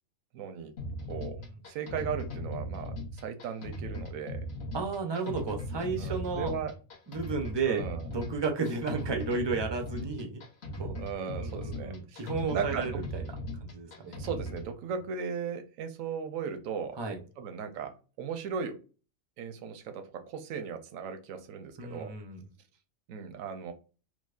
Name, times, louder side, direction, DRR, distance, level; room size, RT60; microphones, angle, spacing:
voice 1, 0.3-0.7 1.1-1.4 1.6-4.4 6.0-6.7 7.6-8.1 11.0-12.2 12.5-13.0 14.0-17.0 17.4-18.8 19.4-22.1 23.1-23.7, right 6 dB, 80° right, 7 dB, 1.0 m, -37 dB
sound 1, 0.8-14.7, left 1 dB, 55° left, 1.2 m, -38 dB
voice 2, 4.7-6.5 7.1-10.4 10.7-11.0 11.4-13.2 13.6-14.1 17.0-17.2 21.8-22.4, right 4 dB, 40° right, 3 dB, 0.3 m, -33 dB
4.9 x 2.0 x 2.4 m, 0.35 s
omnidirectional pair, 1.4 m